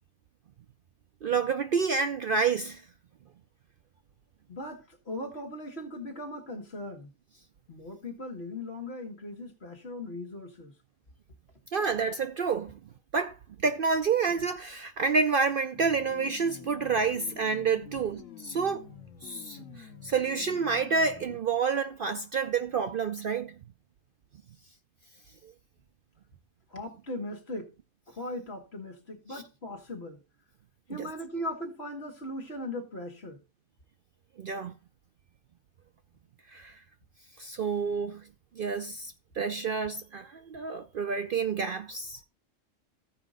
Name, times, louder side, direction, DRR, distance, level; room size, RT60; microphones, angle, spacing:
voice 1, 1.2-2.8 11.7-12.8 13.1-13.4 13.6-18.8 19.2-23.5 25.4-25.5 29.3-29.4 31.0-31.1 34.4-34.7 36.5-36.8 37.4-38.2 38.6-42.2, right 5 dB, 55° right, 0.7 m, -29 dB
voice 2, 4.5-7.1 7.7-10.7 17.8-18.2 26.7-27.7 28.1-30.2 30.9-33.4, left 1 dB, 55° left, 2.0 m, -39 dB
sound 1, 15.7-21.4, left 8 dB, 80° left, 1.5 m, -48 dB
15.0 x 5.1 x 3.8 m
omnidirectional pair, 1.3 m